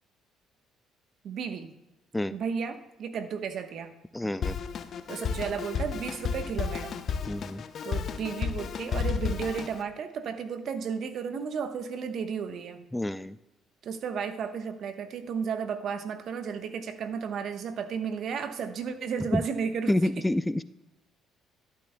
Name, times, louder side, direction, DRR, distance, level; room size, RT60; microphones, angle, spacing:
voice 1, 1.2-1.7 2.3-3.9 4.2-4.3 5.1-7.0 7.8-12.8 13.8-20.2, right 6 dB, 60° right, 8 dB, 1.0 m, -33 dB
voice 2, 4.1-4.6 7.3-7.6 12.9-13.3 19.3-19.4 19.9-20.6, left 1 dB, 10° left, 15 dB, 0.4 m, -27 dB
Drum kit, 4.4-9.8, left 6 dB, 55° left, 0.6 m, -32 dB
11.5 x 10.5 x 2.2 m, 0.96 s
hypercardioid pair, 60°, 0 cm